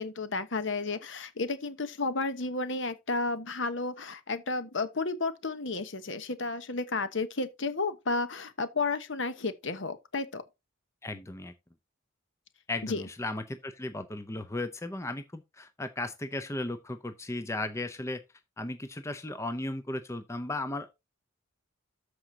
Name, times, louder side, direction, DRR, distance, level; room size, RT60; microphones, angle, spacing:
voice 1, 0.0-10.4 12.8-13.0, left 3 dB, 60° left, 1.1 m, -32 dB
voice 2, 11.0-11.5 12.7-18.2 18.6-20.9, left 2 dB, 15° left, 0.6 m, -36 dB
13.5 x 5.0 x 2.7 m
head